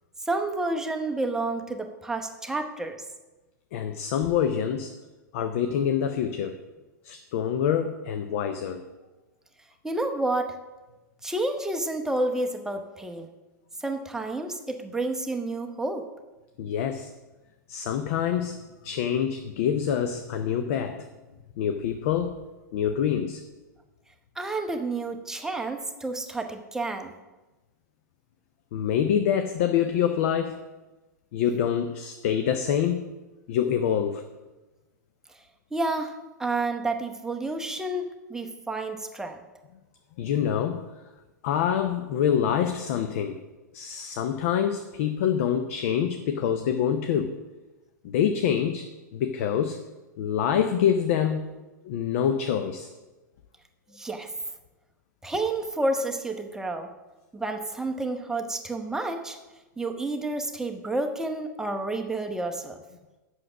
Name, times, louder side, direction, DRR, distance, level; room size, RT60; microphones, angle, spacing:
voice 1, 0.3-3.0 9.8-10.6 11.2-13.3 13.8-16.1 24.4-27.1 35.7-36.1 36.4-39.4 53.9-54.3 55.2-56.9 57.3-59.4 59.8-62.8, right 2 dB, 5° right, 4 dB, 0.8 m, -30 dB
voice 2, 3.7-4.9 5.3-6.6 7.0-8.8 16.6-17.1 17.7-21.1 21.6-22.4 22.7-23.4 28.7-30.6 31.3-33.1 33.5-34.2 40.2-40.9 41.4-43.4 43.7-47.4 48.0-49.8 50.2-51.6 51.8-52.9, left 8 dB, 50° left, 8 dB, 0.6 m, -26 dB
7.8 x 6.2 x 6.1 m, 1.1 s
figure-of-eight pair, 100°, 10 cm